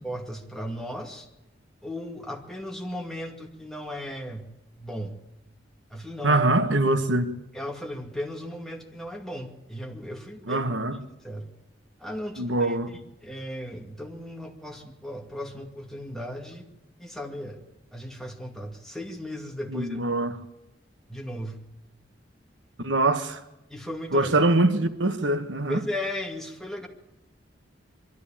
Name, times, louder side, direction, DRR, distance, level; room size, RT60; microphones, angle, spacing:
voice 1, 0.0-1.3 1.8-4.5 4.8-5.2 5.9-6.4 7.5-10.6 11.2-11.5 12.0-12.8 13.2-16.6 17.0-17.6 17.9-20.0 21.1-21.6 23.7-24.5 25.7-26.9, left 1 dB, 5° left, 2.3 m, -36 dB
voice 2, 6.2-7.3 10.5-11.0 12.4-12.9 19.7-20.4 22.8-23.4 24.1-25.8, right 2 dB, 80° right, 1.2 m, -23 dB
23.0 x 13.5 x 8.8 m
head